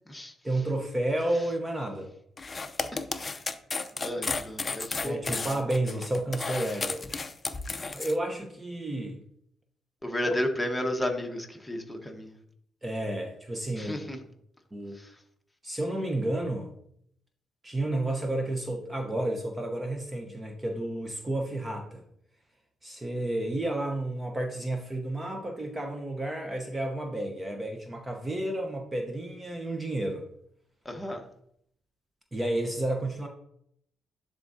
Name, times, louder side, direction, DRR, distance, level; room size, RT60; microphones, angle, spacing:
voice 1, 0.4-2.1 5.0-7.0 7.9-9.2 12.8-14.0 14.7-15.0 15.6-16.7 17.6-22.0 22.8-30.3 32.3-33.3, right 1 dB, 20° right, 3 dB, 0.8 m, -31 dB
sound 1, 2.4-8.1, left 3 dB, 30° left, 0.5 m, -33 dB
voice 2, 4.0-5.6 10.0-12.3 13.8-14.2 14.9-15.2 30.8-31.3, left 1 dB, 10° left, 3 dB, 1.1 m, -33 dB
10.5 x 3.7 x 2.7 m, 0.71 s
cardioid pair, 90°, 0 cm